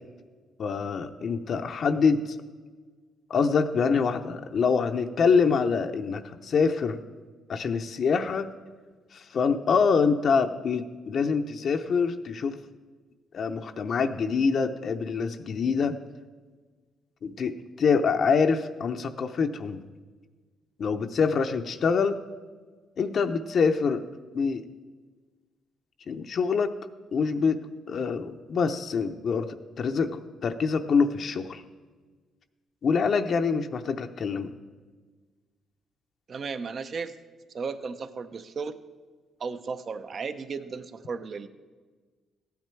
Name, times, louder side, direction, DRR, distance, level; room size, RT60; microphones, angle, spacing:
voice 1, 0.6-2.2 3.3-7.0 7.5-8.5 9.1-12.6 13.3-16.0 17.2-19.8 20.8-22.2 23.0-24.0 24.3-24.6 26.1-26.7 27.1-27.6 27.9-31.6 32.8-34.5, left 5 dB, 55° left, 7 dB, 0.6 m, -25 dB
voice 2, 36.3-37.2 37.5-38.8 39.4-41.5, right 5 dB, 50° right, 11 dB, 0.7 m, -35 dB
15.0 x 9.4 x 4.5 m, 1.4 s
cardioid pair, 90°, 0 cm